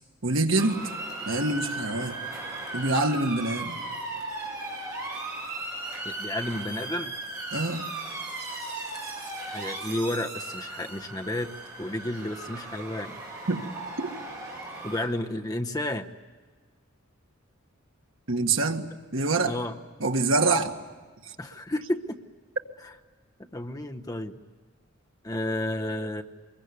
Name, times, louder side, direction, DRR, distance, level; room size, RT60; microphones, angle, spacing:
voice 1, 0.2-0.9 1.3-2.2 2.7-3.8 7.5-7.9 13.5-13.7 14.0-14.1 18.3-19.6 20.0-20.8, right 2 dB, 70° right, 5 dB, 1.7 m, -25 dB
Motor vehicle (road) / Siren, 0.6-15.1, right 2 dB, 15° right, 6.9 m, -37 dB
voice 2, 6.0-7.1 9.5-11.5 11.8-13.2 14.8-16.1 19.5-19.7 21.4-22.2 22.8-22.9 23.5-24.4 25.2-26.2, left 1 dB, 20° left, 4 dB, 0.9 m, -31 dB
25.0 x 22.0 x 9.6 m, 1.4 s
head